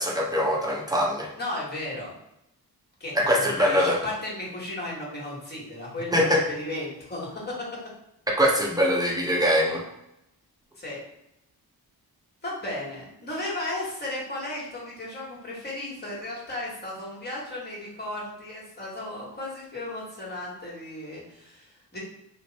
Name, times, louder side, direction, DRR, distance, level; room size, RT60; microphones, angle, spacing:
voice 1, 0.0-1.3 3.1-4.0 6.1-6.4 8.4-9.8, equal, 10° right, -2 dB, 0.7 m, -22 dB
voice 2, 1.4-2.1 3.0-7.7 10.8-11.0 12.4-22.0, left 1 dB, 25° left, -4 dB, 1.4 m, -35 dB
3.1 x 2.0 x 4.0 m, 0.84 s
wide cardioid pair, 115°, 38 cm